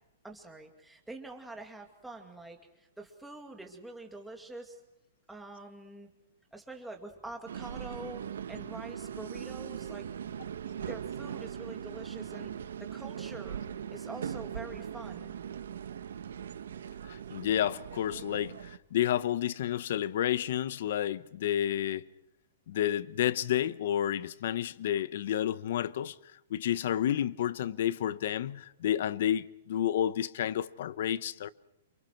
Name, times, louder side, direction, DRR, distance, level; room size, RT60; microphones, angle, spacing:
voice 1, 0.2-4.8 5.3-6.1 6.5-10.1 10.8-13.6 13.9-15.3 17.3-17.4, right 2 dB, 5° right, 2.4 m, -46 dB
sound 1, 7.5-18.8, right 8 dB, 85° right, 1.4 m, -40 dB
voice 2, 17.1-22.1 22.7-26.2 26.5-31.5, left 11 dB, 45° left, 1.0 m, -30 dB
29.5 x 28.0 x 4.6 m
hypercardioid pair, 180°, 0 cm